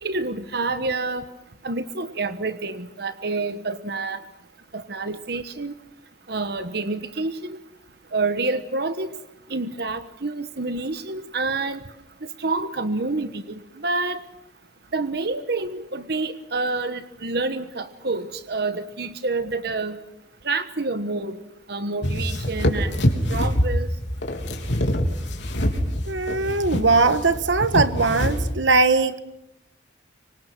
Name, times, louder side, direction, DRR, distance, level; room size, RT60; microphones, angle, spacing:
voice 1, 0.0-1.3 1.6-4.2 4.7-5.7 6.3-7.6 8.1-9.2 9.5-11.8 12.4-14.2 14.9-20.0 20.4-21.4 21.7-23.9, right 3 dB, 60° right, 10 dB, 1.2 m, -28 dB
sound 1, 22.0-28.5, equal, 75° left, 3.8 m, -25 dB
voice 2, 26.1-29.2, right 3 dB, 85° right, 11 dB, 1.4 m, -20 dB
26.0 x 25.0 x 6.1 m, 0.87 s
head